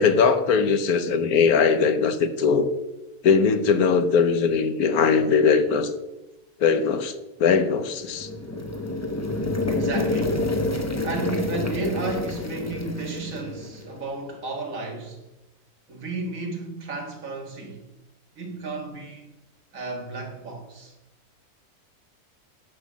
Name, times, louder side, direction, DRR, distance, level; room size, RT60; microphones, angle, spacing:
voice 1, 0.0-2.7 3.2-5.9 6.6-7.1 7.4-8.3, left 5 dB, 75° left, 1.3 m, -20 dB
sound 1, 8.0-14.0, left 2 dB, 15° left, 0.8 m, -28 dB
voice 2, 9.7-10.4 11.0-15.3 15.9-17.8 18.4-19.3 19.7-20.9, right 2 dB, 60° right, 2.2 m, -33 dB
9.9 x 5.5 x 7.3 m
omnidirectional pair, 1.6 m